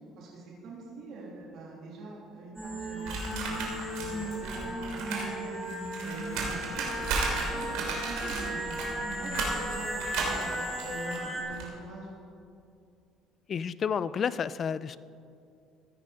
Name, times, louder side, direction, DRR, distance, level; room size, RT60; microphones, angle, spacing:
voice 1, 0.2-3.6 3.9-5.6 6.0-6.9 7.2-10.5 10.8-12.1, right 2 dB, 60° right, -5 dB, 3.1 m, -43 dB
sound 1, 2.6-11.4, equal, 5° right, 2.9 m, -36 dB
sound 2, 3.0-5.3 5.5-11.7, right 3 dB, 80° right, 2.9 m, -34 dB
voice 2, 13.5-15.0, left 7 dB, 40° left, 17 dB, 0.4 m, -31 dB
15.5 x 9.3 x 5.1 m, 2.4 s
cardioid pair, 120°, 0 cm